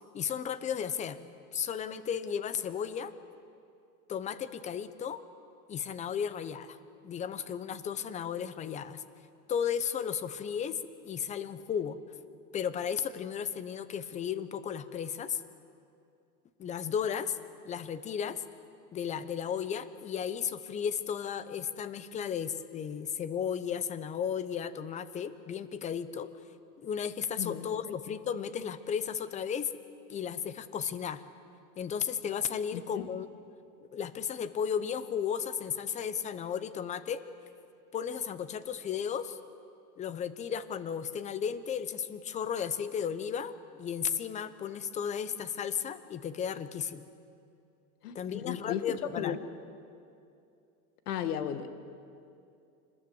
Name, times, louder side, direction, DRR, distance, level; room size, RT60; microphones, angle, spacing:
voice 1, 0.1-3.1 4.1-5.2 5.7-6.8 7.0-9.0 9.5-12.0 12.5-15.4 16.6-17.4 17.6-18.4 18.9-26.3 26.8-29.7 30.1-31.2 31.8-33.3 33.9-37.2 37.9-39.4 40.0-43.5 43.8-47.0 48.1-49.4, left 8 dB, 15° left, 14 dB, 0.7 m, -34 dB
voice 2, 27.4-28.2 32.7-33.1 48.0-48.9 49.2-49.4 51.1-51.7, left 9 dB, 80° left, 10 dB, 1.9 m, -35 dB
26.0 x 20.5 x 7.8 m, 2.5 s
supercardioid pair, 145°, 45 cm